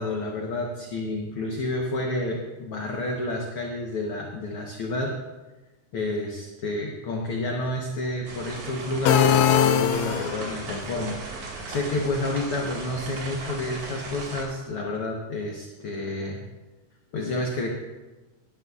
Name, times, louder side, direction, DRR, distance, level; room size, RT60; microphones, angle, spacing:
voice 1, 0.0-5.2 5.9-16.4 17.1-17.7, left 2 dB, 60° left, 0 dB, 1.6 m, -30 dB
sound 1, 8.3-14.5, right 3 dB, 70° right, 3.3 m, -37 dB
sound 2, 9.1-10.6, left 9 dB, 90° left, 1.5 m, -21 dB
19.0 x 10.5 x 2.4 m, 1.2 s
omnidirectional pair, 3.6 m